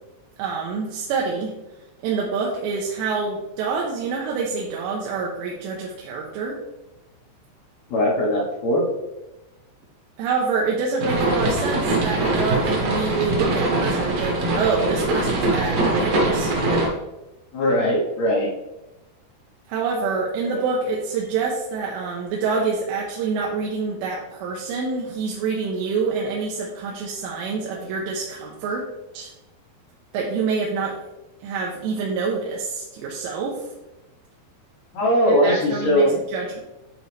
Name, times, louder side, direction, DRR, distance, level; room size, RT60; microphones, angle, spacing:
voice 1, 0.4-1.5 2.0-6.6 10.2-16.5 19.7-28.9 29.1-29.3 30.1-31.0 31.4-33.7 35.4-36.6, right 4 dB, 85° right, -2 dB, 3.1 m, -26 dB
voice 2, 7.9-8.9 17.5-18.5 34.9-36.1, equal, 75° left, -4 dB, 1.6 m, -20 dB
sound 1, 11.0-16.9, right 2 dB, 60° right, 1.7 m, -22 dB
10.5 x 3.9 x 3.3 m, 0.98 s
omnidirectional pair, 5.0 m